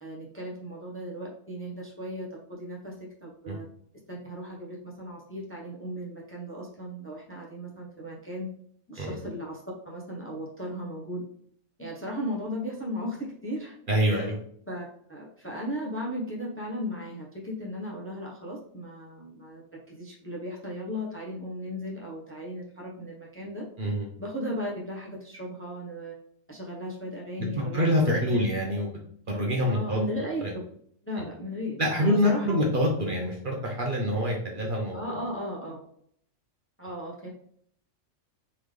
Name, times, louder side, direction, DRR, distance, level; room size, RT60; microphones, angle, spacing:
voice 1, 0.0-3.7 4.1-8.5 8.9-11.3 11.8-13.8 14.0-14.3 14.7-19.6 19.9-23.7 24.2-26.1 26.5-27.9 28.3-28.4 29.6-30.4 31.0-32.5 34.9-35.8 36.8-37.3, equal, 10° left, -3 dB, 0.8 m, -36 dB
voice 2, 13.9-14.3 23.8-24.1 27.7-28.9 29.3-30.0 30.4-30.5 31.8-35.2, equal, 45° right, -1 dB, 0.9 m, -26 dB
3.9 x 3.4 x 3.2 m, 0.62 s
omnidirectional pair, 1.3 m